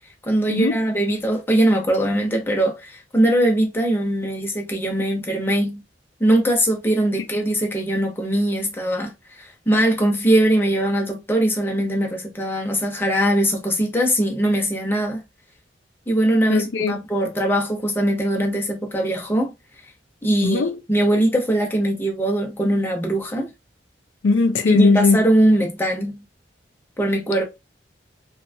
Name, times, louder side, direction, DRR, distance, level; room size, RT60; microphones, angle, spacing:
voice 1, 0.2-5.8 6.2-15.2 16.1-19.5 20.2-23.5 24.7-26.2 27.0-27.4, right 1 dB, 15° left, 0.8 m, -21 dB
voice 2, 16.5-17.0 20.4-20.8 24.2-25.2, left 3 dB, 90° left, 0.4 m, -18 dB
2.8 x 2.3 x 2.6 m
head